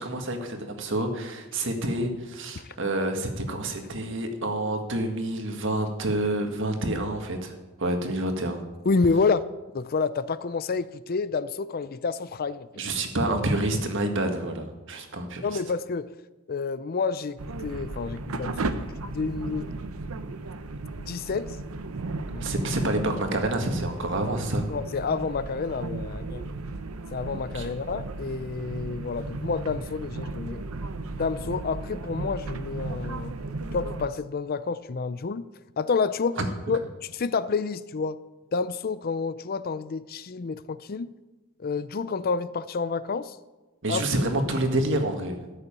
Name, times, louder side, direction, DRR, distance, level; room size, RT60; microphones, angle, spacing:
voice 1, 0.0-7.5 7.8-8.6 12.8-15.4 22.4-24.7 27.5-27.7 36.4-36.5 43.8-45.4, right 1 dB, 60° right, 5 dB, 1.8 m, -28 dB
voice 2, 8.9-9.4 9.7-12.7 15.2-16.1 16.5-19.7 21.0-21.6 22.3-22.5 24.7-26.5 27.1-30.6 31.1-33.3 33.7-35.5 35.8-36.4 36.7-38.2 38.5-41.1 41.6-43.4 43.9-44.0, left 4 dB, 45° left, 15 dB, 0.5 m, -29 dB
sound 1, 17.4-34.1, right 2 dB, 90° right, 0.8 m, -35 dB
13.5 x 6.8 x 8.7 m, 1.1 s
head